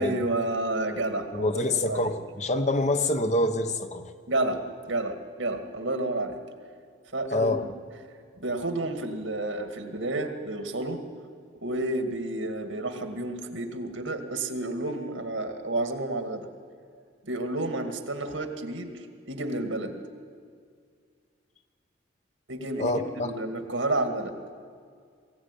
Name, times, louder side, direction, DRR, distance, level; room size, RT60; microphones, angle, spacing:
voice 1, 0.0-1.5 1.9-2.1 4.3-6.4 7.1-7.7 8.4-11.0 11.6-16.5 17.2-20.0 22.5-24.3, right 2 dB, 75° right, 6 dB, 2.2 m, -30 dB
voice 2, 1.3-4.1 7.3-7.6 22.8-23.3, left 1 dB, 35° left, 8 dB, 1.0 m, -26 dB
21.5 x 16.5 x 9.9 m, 2.1 s
head